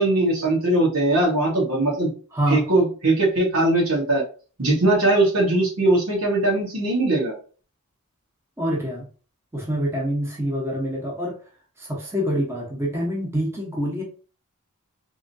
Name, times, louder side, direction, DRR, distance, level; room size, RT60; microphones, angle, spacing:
voice 1, 0.0-2.1 2.5-4.2 4.6-7.3, right 2 dB, 85° right, -2 dB, 1.5 m, -20 dB
voice 2, 2.3-2.6 8.6-9.1 9.5-11.4 11.8-14.0, equal, 10° right, -3 dB, 1.0 m, -26 dB
3.6 x 2.9 x 2.7 m, 0.38 s
head